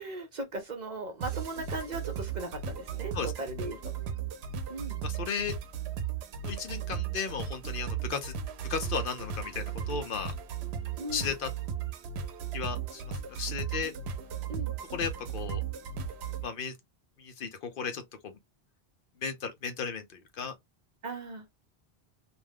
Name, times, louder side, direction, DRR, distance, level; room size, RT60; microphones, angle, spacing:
voice 1, 0.0-3.9 4.7-5.0 11.0-11.3 14.5-14.7 21.0-21.5, right 2 dB, 50° right, 0.7 m, -38 dB
sound 1, 1.2-16.4, right 7 dB, 80° right, 0.8 m, -36 dB
voice 2, 5.0-5.5 6.4-8.3 8.6-10.3 11.1-11.5 12.5-13.0 13.3-13.9 14.9-15.6 16.4-16.7 17.2-18.3 19.2-20.5, left 6 dB, 60° left, 0.8 m, -35 dB
2.5 x 2.2 x 3.3 m
omnidirectional pair, 1.1 m